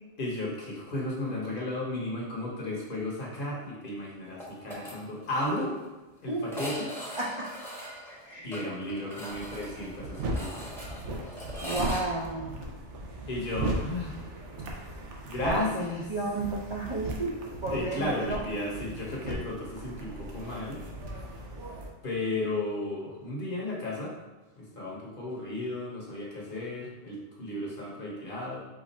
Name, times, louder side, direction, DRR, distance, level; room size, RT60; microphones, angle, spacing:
voice 1, 0.2-5.8 6.2-6.9 8.4-11.1 13.3-14.2 15.3-16.0 17.7-20.8 22.0-24.1 24.6-28.6, left 2 dB, 50° left, -3 dB, 1.2 m, -34 dB
sound 1, 4.4-4.9 5.2-5.3 5.6-5.7 6.4-12.0, equal, ahead, 0.8 m, -40 dB
voice 2, 7.1-7.5 8.1-8.5 11.6-12.6 15.4-18.4, right 2 dB, 40° right, -4 dB, 0.4 m, -33 dB
sound 2, 9.3-21.9, right 1 dB, 85° right, 1.0 m, -37 dB
5.0 x 2.4 x 4.1 m, 1.1 s
omnidirectional pair, 1.2 m